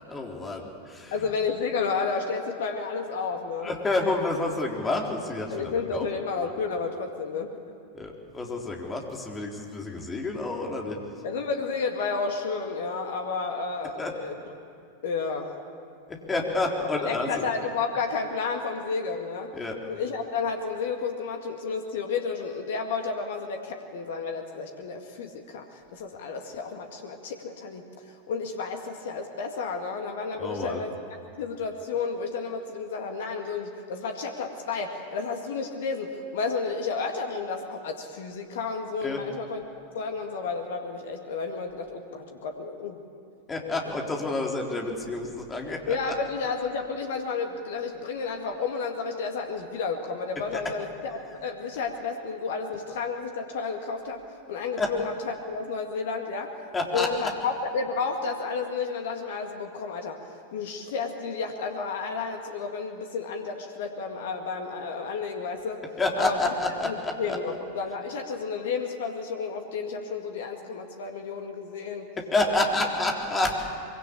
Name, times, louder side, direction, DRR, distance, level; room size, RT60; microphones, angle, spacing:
voice 1, 0.0-1.1 3.6-6.1 7.9-11.0 14.0-14.1 16.1-17.5 19.5-19.8 30.4-30.8 39.0-39.2 43.5-45.9 54.8-54.9 56.7-57.1 66.0-67.4 72.3-73.6, left 2 dB, 15° left, 0 dB, 3.8 m, -29 dB
voice 2, 1.1-3.7 5.5-7.7 11.2-14.4 15.0-15.5 17.0-19.5 19.8-31.0 31.4-39.6 39.9-43.0 43.8-44.0 45.9-56.5 56.9-60.2 60.5-65.8 66.2-72.1 72.5-72.9, left 4 dB, 55° left, 4 dB, 2.0 m, -31 dB
24.0 x 23.5 x 8.7 m, 2.5 s
figure-of-eight pair, 90°, 0 cm